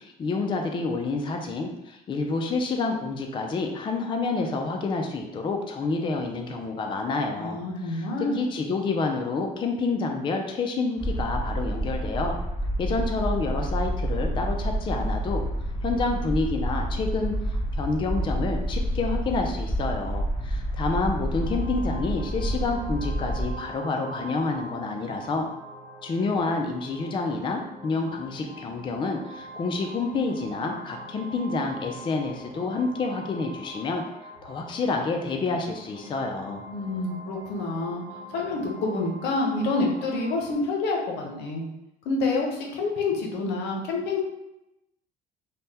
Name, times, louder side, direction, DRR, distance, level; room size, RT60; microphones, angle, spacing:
voice 1, 0.0-8.1 8.3-12.4 12.8-15.4 15.8-17.3 17.8-25.5 26.0-34.0 34.4-36.7, left 3 dB, 30° left, 3 dB, 0.4 m, -28 dB
voice 2, 7.4-8.4 36.7-38.0 38.3-41.6 42.0-44.2, left 3 dB, 85° left, 0 dB, 0.7 m, -27 dB
sound 1, 11.0-23.5, right 1 dB, 10° left, 0.8 m, -29 dB
sound 2, 21.3-40.5, equal, 25° right, 1.1 m, -43 dB
3.3 x 2.1 x 2.8 m, 0.88 s
cardioid pair, 110°, 17 cm